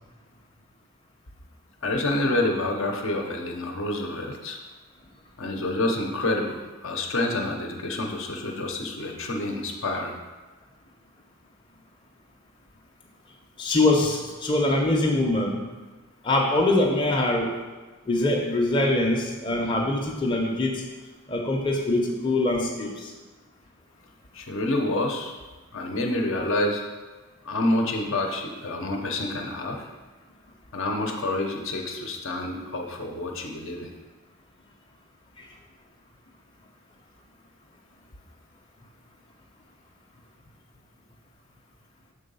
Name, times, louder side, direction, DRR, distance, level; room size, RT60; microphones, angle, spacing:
voice 1, 1.8-4.6 5.4-10.2 24.3-25.3 25.7-26.8 27.4-29.9 30.7-33.9, left 2 dB, 60° left, 2 dB, 0.8 m, -28 dB
voice 2, 13.6-15.6 16.2-17.5 18.1-20.8 21.3-23.1 35.4-35.5, left 2 dB, 20° left, -2 dB, 0.7 m, -23 dB
6.8 x 3.8 x 5.4 m, 1.3 s
head